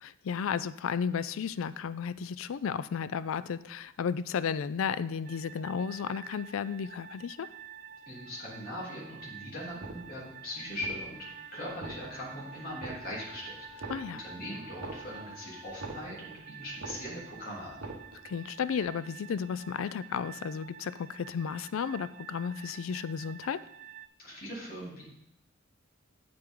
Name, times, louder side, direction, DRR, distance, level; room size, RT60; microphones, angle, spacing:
voice 1, 0.0-7.5 13.9-14.2 18.2-23.6, left 7 dB, 75° left, 15 dB, 0.4 m, -33 dB
sound 1, 5.2-24.1, right 9 dB, 45° right, 0.5 m, -49 dB
voice 2, 8.1-11.3 11.5-17.8 24.2-25.0, left 1 dB, 45° left, -6 dB, 3.1 m, -40 dB
sound 2, 9.7-10.4 10.7-11.3 11.7-12.4 12.7-13.4 13.7-16.4 16.7-17.4 17.7-18.4 18.7-18.8, right 3 dB, 85° right, 1.2 m, -44 dB
Wind instrument woodwind instrument, 11.1-15.9, left 2 dB, 10° right, 2.9 m, -52 dB
8.4 x 7.7 x 3.7 m, 0.79 s
head